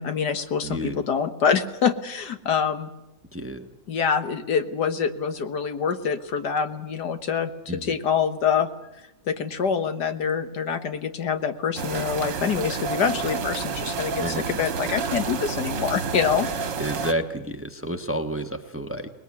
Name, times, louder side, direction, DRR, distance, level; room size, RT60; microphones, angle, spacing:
voice 1, 0.0-2.9 3.9-8.7 9.3-16.5, left 6 dB, 65° left, 10 dB, 1.8 m, -25 dB
voice 2, 0.6-1.0 3.3-3.7 7.7-8.0 14.2-14.5 16.8-19.1, equal, 10° right, 8 dB, 1.2 m, -30 dB
sound 1, 11.8-17.1, right 5 dB, 80° right, 2.2 m, -29 dB
24.5 x 20.0 x 9.7 m, 0.90 s
omnidirectional pair, 2.0 m